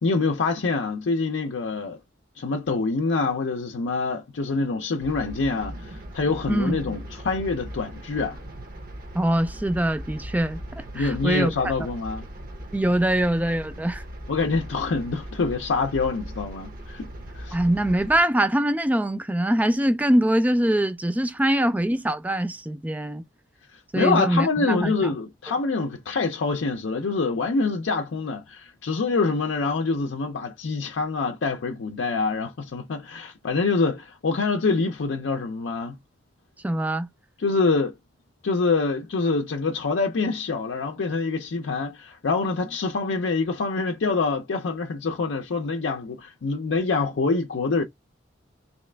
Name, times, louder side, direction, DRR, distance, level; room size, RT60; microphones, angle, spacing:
voice 1, 0.0-2.0 2.4-8.4 10.9-12.2 14.3-17.1 17.3-17.6 23.7-36.0 37.4-37.9 38.4-47.8, left 4 dB, 90° left, 0.5 m, -25 dB
sound 1, 5.0-18.2, right 1 dB, 50° right, 0.7 m, -39 dB
voice 2, 6.5-6.8 9.1-11.5 12.7-14.0 17.5-23.2 23.9-24.9 36.6-37.1, right 1 dB, 10° right, 0.3 m, -23 dB
3.2 x 2.9 x 3.3 m
head